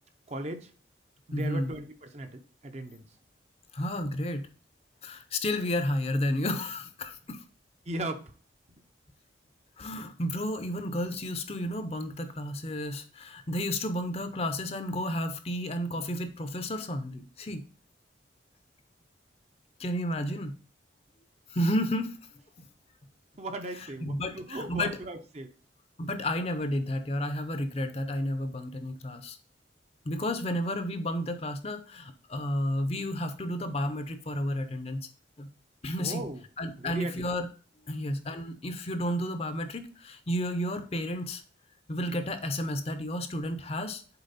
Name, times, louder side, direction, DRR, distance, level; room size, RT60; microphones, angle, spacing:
voice 1, 0.3-0.7 1.3-3.0 4.0-4.1 7.9-8.3 23.4-25.5 36.0-36.4 36.8-37.3, right 1 dB, 35° right, 7 dB, 0.6 m, -37 dB
voice 2, 1.3-1.7 3.7-4.5 5.0-7.4 9.8-17.6 19.8-20.5 21.5-22.2 23.8-25.0 26.0-29.4 30.1-35.1 35.4-35.5 35.8-36.3 36.6-37.5 37.9-41.4 41.9-44.0, left 1 dB, 30° left, 9 dB, 0.6 m, -32 dB
6.9 x 4.4 x 4.2 m, 0.40 s
head